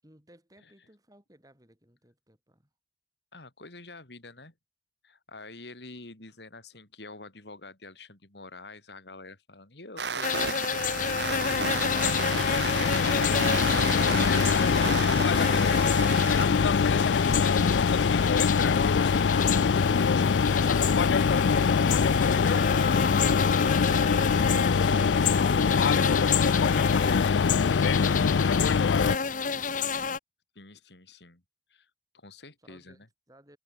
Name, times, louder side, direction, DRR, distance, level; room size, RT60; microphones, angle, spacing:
voice 1, 0.0-2.7 32.6-33.6, right 1 dB, 20° right, 7.3 m, -59 dB
voice 2, 3.3-4.5 5.0-20.8 30.6-31.4 31.7-33.1, left 3 dB, 70° left, 3.6 m, -47 dB
sound 1, 10.0-16.4, right 5 dB, 75° right, 2.8 m, -33 dB
sound 2, 10.2-30.2, left 6 dB, 45° left, 0.9 m, -31 dB
sound 3, 10.7-29.2, left 5 dB, 90° left, 0.4 m, -23 dB
head